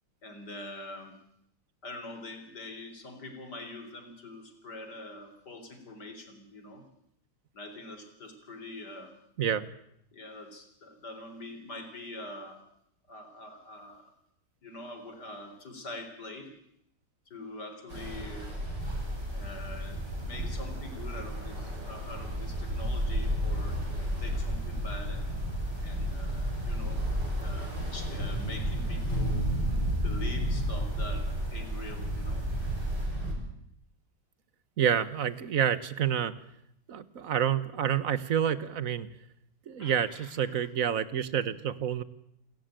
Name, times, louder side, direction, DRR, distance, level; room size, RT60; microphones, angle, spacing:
voice 1, 0.2-1.2 1.8-6.8 7.5-9.2 10.1-12.6 13.1-14.1 14.6-16.5 17.3-18.5 19.3-23.8 24.2-25.4 25.8-27.0 27.3-29.5 30.0-32.5 39.8-40.6, left 2 dB, 65° left, 7 dB, 4.5 m, -44 dB
Ocean, 17.9-33.3, equal, 70° right, 7.7 m, -32 dB
sound 1, 18.8-33.1, right 2 dB, 15° right, 4.3 m, -47 dB
voice 2, 34.8-36.3 36.9-39.1 39.7-42.0, right 9 dB, 55° right, 16 dB, 1.4 m, -28 dB
28.5 x 14.5 x 9.0 m, 0.75 s
omnidirectional pair, 1.9 m